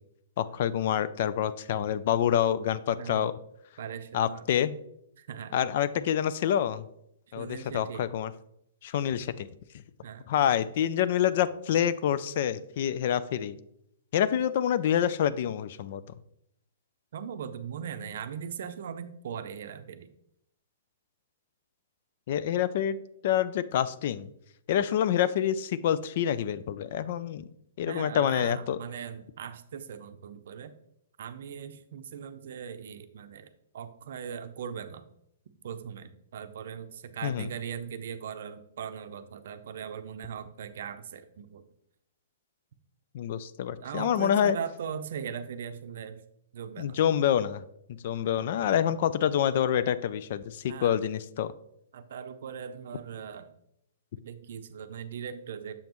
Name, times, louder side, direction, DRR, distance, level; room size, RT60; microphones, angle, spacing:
voice 1, 0.4-3.3 4.1-4.8 5.5-6.9 7.3-8.3 8.8-9.5 10.3-13.6 14.1-16.0 22.3-24.3 24.7-27.5 27.8-28.8 37.2-37.5 43.1-44.6 46.8-51.5, left 10 dB, 50° left, 16 dB, 0.3 m, -27 dB
voice 2, 3.0-3.3 3.8-4.5 5.2-5.7 7.4-8.1 10.0-10.2 17.1-20.1 27.9-30.7 31.2-33.5 33.7-35.1 35.6-41.6 43.8-46.2 46.5-47.0 50.7-51.0 51.9-53.5 54.2-55.8, right 7 dB, 65° right, 10 dB, 0.5 m, -39 dB
6.9 x 5.2 x 3.0 m, 0.76 s
hypercardioid pair, 150°, 0 cm